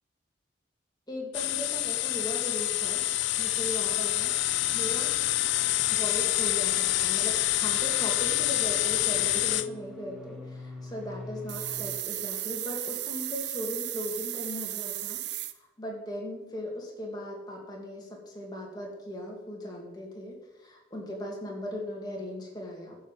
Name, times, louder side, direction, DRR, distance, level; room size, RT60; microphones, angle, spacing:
voice 1, 1.1-3.0 3.4-4.3 4.7-5.1 5.9-15.2 15.8-23.0, left 1 dB, 20° left, -1 dB, 2.3 m, -38 dB
sound 1, 1.3-9.7, left 15 dB, 75° left, 0.4 m, -27 dB
sound 2, 6.1-12.0, left 1 dB, ahead, 1.4 m, -47 dB
sound 3, 11.5-15.5, right 14 dB, 65° right, 0.6 m, -35 dB
11.5 x 5.6 x 7.5 m, 1.1 s
head